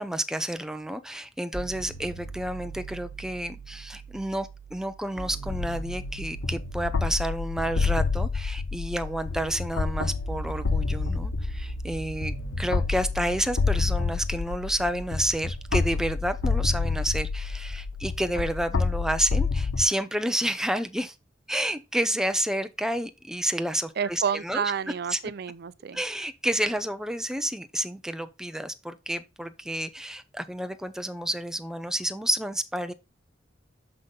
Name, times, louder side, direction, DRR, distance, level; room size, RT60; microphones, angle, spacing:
voice 1, 0.0-21.1 21.5-24.7 25.1-25.2 25.9-32.9, right 1 dB, 5° right, 0.7 m, -30 dB
sound 1, 1.5-19.5, right 4 dB, 55° left, 3.2 m, -41 dB
sound 2, 5.5-19.9, left 4 dB, 75° left, 0.6 m, -29 dB
voice 2, 24.0-26.0, right 7 dB, 60° right, 0.5 m, -30 dB
6.8 x 5.6 x 3.9 m
head